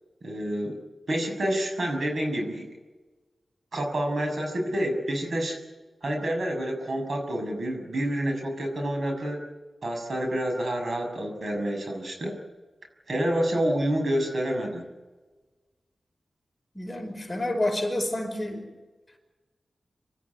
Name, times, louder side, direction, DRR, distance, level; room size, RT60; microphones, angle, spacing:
voice 1, 0.2-0.8 1.1-2.7 3.7-5.6 6.0-9.4 9.8-12.3 13.1-14.9, right 1 dB, 60° right, 3 dB, 6.6 m, -28 dB
voice 2, 16.8-18.7, left 1 dB, 15° left, 2 dB, 5.3 m, -29 dB
26.5 x 13.5 x 9.8 m, 1.2 s
wide cardioid pair, 75°, 0 cm